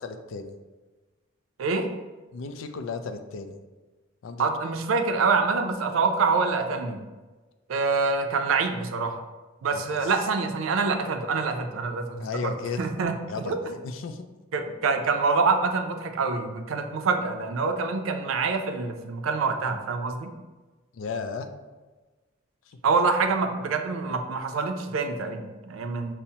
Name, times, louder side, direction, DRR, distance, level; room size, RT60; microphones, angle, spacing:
voice 1, 0.0-0.5 2.3-3.6 4.2-4.5 9.7-10.1 12.2-12.9 13.3-13.5 13.8-14.2 20.9-21.5 22.7-22.8, left 5 dB, 75° left, 8 dB, 0.3 m, -34 dB
voice 2, 1.6-1.9 4.4-7.0 7.7-9.2 9.6-13.2 13.4-13.7 14.5-20.3 22.8-26.1, right 4 dB, 85° right, 6 dB, 0.4 m, -26 dB
5.5 x 2.0 x 2.7 m, 1.2 s
head